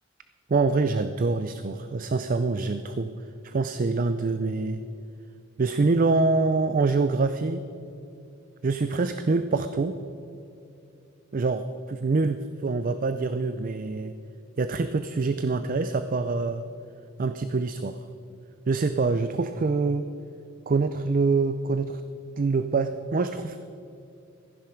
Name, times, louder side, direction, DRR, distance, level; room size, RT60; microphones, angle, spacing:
voice 1, 0.5-3.1 3.4-4.8 5.6-7.6 8.6-10.0 11.3-11.6 11.9-14.1 14.6-16.6 17.2-18.0 18.7-20.1 20.7-22.0 22.4-23.6, right 3 dB, 40° right, 10 dB, 0.4 m, -25 dB
14.5 x 10.5 x 5.1 m, 2.8 s
head